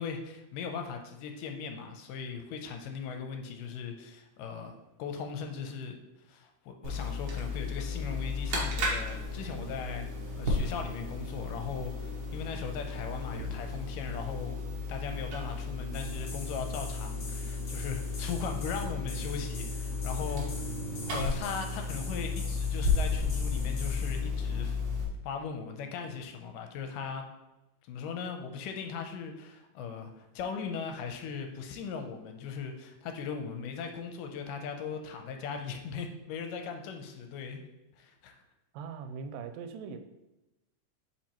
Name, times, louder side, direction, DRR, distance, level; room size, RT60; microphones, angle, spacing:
voice 1, 0.0-6.0 6.3-10.1 10.4-14.6 14.9-20.8 21.1-24.8 25.2-27.3 27.8-37.6 38.0-38.4, left 6 dB, 80° left, 5 dB, 2.2 m, -38 dB
sound 1, 6.8-25.0, left 3 dB, 60° right, 1.5 m, -34 dB
sound 2, 15.9-24.2, left 3 dB, 55° left, 1.9 m, -46 dB
voice 2, 38.7-40.0, right 6 dB, 85° right, 8 dB, 2.2 m, -40 dB
7.3 x 5.0 x 3.0 m, 0.99 s
omnidirectional pair, 3.9 m